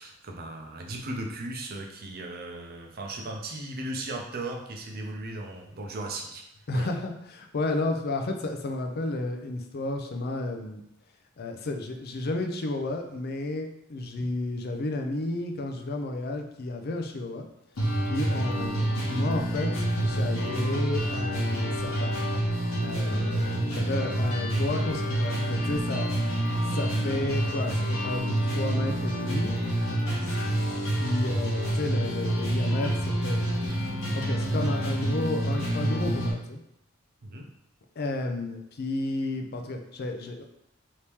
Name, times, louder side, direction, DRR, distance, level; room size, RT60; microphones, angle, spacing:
voice 1, 0.0-6.4 6.7-6.9 23.5-23.9 30.2-30.5 37.2-37.5, right 2 dB, 50° right, 2 dB, 0.5 m, -37 dB
voice 2, 6.7-10.8 11.4-17.4 18.0-19.7 20.0-22.1 22.8-26.1 26.7-29.6 31.0-33.4 34.1-36.6 38.0-40.4, left 2 dB, 50° left, 4 dB, 0.4 m, -32 dB
sound 1, 17.8-36.3, right 1 dB, 85° left, 1.1 m, -27 dB
3.0 x 2.8 x 3.4 m, 0.79 s
head